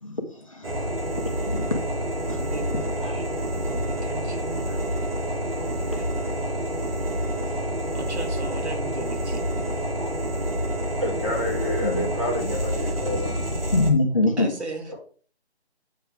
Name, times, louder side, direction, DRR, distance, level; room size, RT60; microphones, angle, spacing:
voice 1, 0.0-0.7 1.5-1.7 2.3-2.4 7.4-7.7 11.8-12.1 13.7-14.5, left 2 dB, 30° left, 1 dB, 1.2 m, -24 dB
sound 1, 0.6-13.9, equal, 60° right, 2.7 m, -28 dB
voice 2, 2.4-4.7 5.6-6.1 7.9-9.4 14.4-14.9, right 2 dB, 85° right, 4 dB, 2.3 m, -37 dB
voice 3, 11.0-13.4 14.9-15.0, left 1 dB, 30° right, -3 dB, 4.8 m, -29 dB
9.0 x 6.6 x 3.4 m, 0.42 s
figure-of-eight pair, 180°, 33 cm